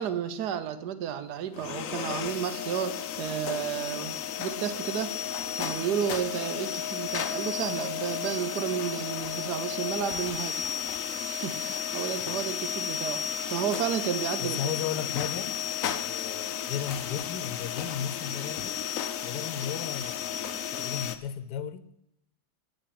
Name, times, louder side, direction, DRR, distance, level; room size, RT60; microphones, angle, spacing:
voice 1, 0.0-5.1 5.6-10.6 11.3-14.7, right 9 dB, 80° right, 1.4 m, -32 dB
sound 1, 1.5-21.2, left 9 dB, 60° left, 1.0 m, -33 dB
voice 2, 14.4-15.6 16.0-18.8 19.2-21.9, left 9 dB, 85° left, 1.3 m, -35 dB
13.5 x 5.8 x 8.6 m
omnidirectional pair, 1.7 m